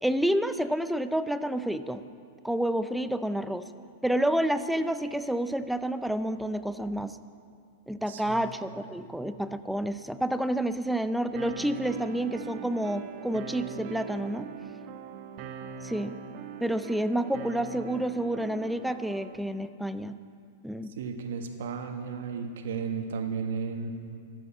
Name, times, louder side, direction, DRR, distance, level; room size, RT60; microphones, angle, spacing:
voice 1, 0.0-2.0 2.4-3.7 4.0-7.2 7.9-14.5 15.8-16.2 16.6-20.2 20.6-20.9, right 1 dB, ahead, 11 dB, 0.5 m, -29 dB
voice 2, 8.1-8.5 20.9-23.9, right 5 dB, 75° right, 5 dB, 1.5 m, -34 dB
sound 1, 11.3-19.4, right 6 dB, 50° right, 1.0 m, -41 dB
13.0 x 8.4 x 8.3 m, 2.4 s
hypercardioid pair, 120°, 0 cm